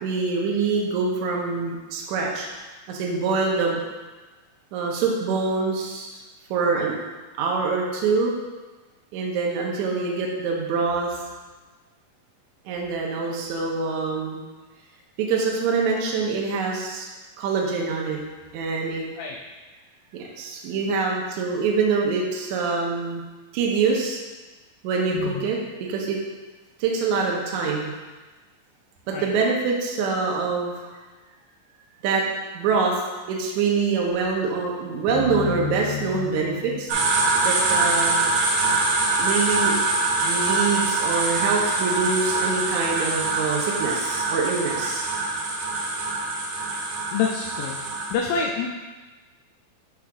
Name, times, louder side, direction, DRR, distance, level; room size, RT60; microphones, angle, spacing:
voice 1, 0.0-2.5 2.9-3.8 4.7-6.2 6.5-6.9 7.4-8.3 9.1-11.2 12.7-14.4 15.2-17.1 17.4-18.2 18.5-19.0 20.4-23.2 23.5-24.2 24.8-25.6 25.9-26.2 26.8-27.9 29.1-30.9 32.0-32.2 32.5-36.9 37.4-38.3 39.2-39.7 40.2-45.1, right 4 dB, 70° right, -1 dB, 1.9 m, -25 dB
voice 2, 25.1-25.5 29.1-29.3 47.1-47.8 48.1-48.7, left 6 dB, 80° left, 0 dB, 2.0 m, -27 dB
sound 1, 35.1-38.3, left 8 dB, 60° left, 2.5 m, -33 dB
sound 2, 36.9-48.1, right 3 dB, 90° right, 3.0 m, -24 dB
9.4 x 5.8 x 2.5 m, 1.2 s
omnidirectional pair, 4.1 m